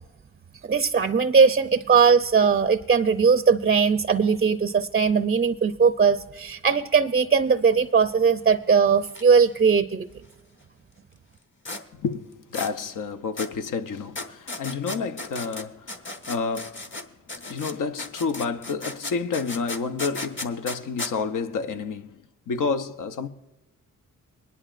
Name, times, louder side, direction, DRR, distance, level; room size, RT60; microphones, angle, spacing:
voice 1, 0.7-10.1, right 6 dB, 30° right, 0.5 m, -20 dB
sound 1, 9.0-9.2 9.5-9.6 11.7-11.8 12.5-12.7 13.4-13.5 14.2-17.0 17.3-21.1, left 2 dB, 35° left, 1.2 m, -35 dB
voice 2, 12.0-15.8 16.3-16.8 17.5-22.1 22.5-23.3, left 5 dB, 70° left, 0.8 m, -29 dB
20.5 x 11.0 x 2.5 m
cardioid pair, 70°, 33 cm